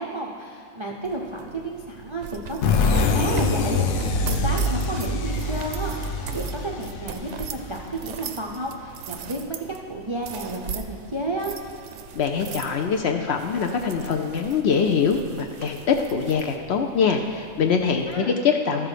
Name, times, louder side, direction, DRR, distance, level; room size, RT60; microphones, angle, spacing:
voice 1, 0.0-11.5 18.1-18.3, right 2 dB, 40° right, -1 dB, 0.4 m, -32 dB
sound 1, 1.0-18.2, right 7 dB, 65° right, 0.8 m, -39 dB
sound 2, 2.6-8.1, left 3 dB, 90° left, 1.2 m, -24 dB
voice 2, 12.1-18.9, left 6 dB, 65° left, 4 dB, 0.7 m, -23 dB
13.0 x 6.0 x 4.9 m, 2.3 s
omnidirectional pair, 1.4 m